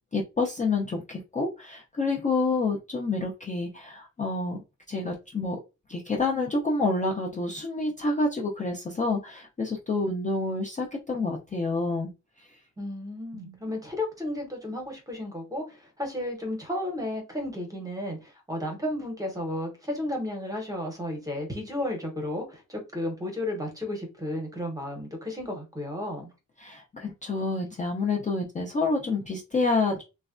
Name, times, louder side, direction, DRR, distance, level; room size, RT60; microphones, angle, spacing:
voice 1, 0.1-4.6 4.9-5.6 5.9-12.1 12.4-12.5 13.3-13.5 26.6-30.0, left 3 dB, 25° left, 0.4 m, -28 dB
voice 2, 12.8-26.3, left 1 dB, 10° right, 0.8 m, -33 dB
3.2 x 2.1 x 2.4 m
wide cardioid pair, 155°, 32 cm